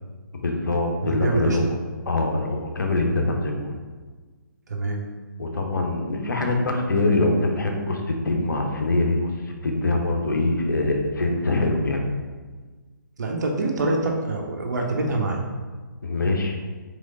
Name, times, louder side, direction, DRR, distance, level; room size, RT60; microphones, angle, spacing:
voice 1, 0.4-1.8 2.1-3.7 5.4-9.3 9.6-12.0 16.0-16.5, left 2 dB, 70° left, 2 dB, 0.8 m, -23 dB
voice 2, 1.0-1.6 4.7-5.0 13.2-15.4, right 2 dB, 55° right, 1 dB, 0.8 m, -25 dB
3.6 x 3.2 x 3.9 m, 1.4 s
figure-of-eight pair, 140°, 11 cm